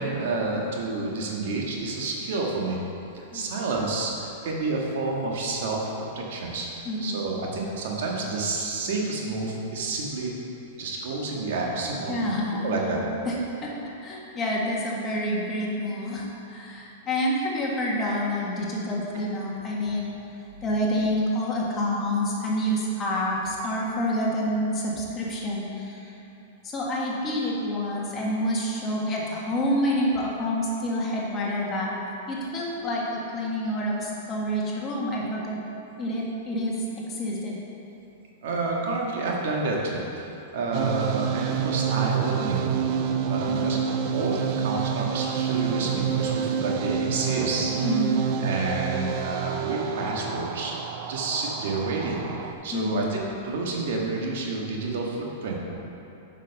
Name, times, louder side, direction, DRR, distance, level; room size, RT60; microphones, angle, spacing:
voice 1, 0.0-2.8 3.1-5.9 6.1-10.3 10.8-12.2 12.6-13.0 19.1-19.2 38.4-42.6 43.3-43.8 44.1-47.7 48.4-50.7 51.1-52.2 52.6-55.6, right 3 dB, 70° right, -2 dB, 1.6 m, -29 dB
voice 2, 3.3-3.6 6.9-7.2 12.1-20.1 20.6-26.1 26.6-32.0 32.3-35.6 36.0-36.8 37.1-37.5 43.5-43.8 47.8-48.2 52.7-53.1, equal, 25° left, -4 dB, 1.7 m, -28 dB
sound 1, 40.7-52.5, right 7 dB, 45° right, 0.5 m, -28 dB
7.3 x 6.0 x 5.4 m, 2.9 s
hypercardioid pair, 125°, 0 cm